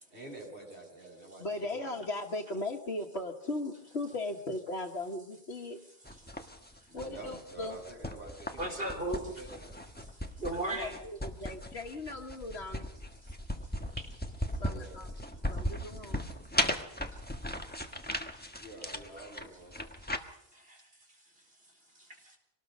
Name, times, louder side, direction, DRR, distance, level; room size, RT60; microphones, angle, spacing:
voice 1, 0.1-2.0 6.9-9.8 14.6-15.0 18.6-19.7, right 2 dB, 85° right, -1 dB, 7.8 m, -48 dB
voice 2, 1.4-5.8 6.9-7.8 10.7-12.9 14.6-15.1 15.5-16.2, left 2 dB, 85° left, -2 dB, 1.7 m, -38 dB
sound 1, 6.0-20.2, left 1 dB, 10° left, 1.3 m, -37 dB
voice 3, 8.6-9.2 10.4-11.0 14.0-14.1 16.6-16.8 17.1-17.2 17.9-18.0 20.5-20.8 22.0-22.4, right 1 dB, 60° right, 3 dB, 4.5 m, -36 dB
25.0 x 19.5 x 5.4 m, 0.77 s
omnidirectional pair, 1.1 m